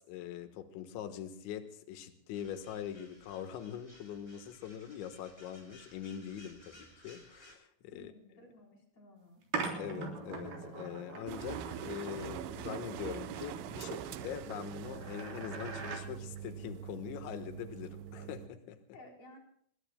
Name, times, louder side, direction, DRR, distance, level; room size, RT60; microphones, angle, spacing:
voice 1, 0.0-8.1 9.8-18.8, left 9 dB, 85° left, 8 dB, 3.7 m, -43 dB
sound 1, 2.3-7.5, left 1 dB, 10° left, 5.2 m, -59 dB
voice 2, 7.9-9.4 18.9-19.4, left 1 dB, 40° left, 0 dB, 5.1 m, -56 dB
sound 2, 9.5-16.0, right 4 dB, 55° right, 5.2 m, -42 dB
sound 3, 11.3-18.5, right 10 dB, 90° right, 3.3 m, -43 dB
26.5 x 21.5 x 2.2 m, 0.65 s
omnidirectional pair, 5.2 m